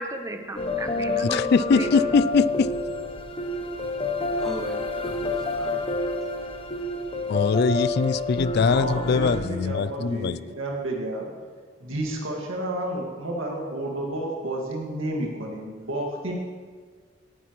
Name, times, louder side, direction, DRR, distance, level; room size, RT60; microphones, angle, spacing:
voice 1, 0.0-2.2, right 1 dB, 15° right, 5 dB, 0.9 m, -35 dB
sound 1, 0.6-9.4, left 2 dB, 30° left, 0.9 m, -28 dB
voice 2, 1.2-2.7 7.3-10.4, left 5 dB, 55° left, 17 dB, 0.3 m, -22 dB
voice 3, 4.4-6.5, equal, 5° left, -2 dB, 1.8 m, -40 dB
voice 4, 8.7-11.3 11.8-16.3, right 1 dB, 85° right, -1 dB, 2.0 m, -31 dB
17.5 x 10.0 x 3.1 m, 1.5 s
head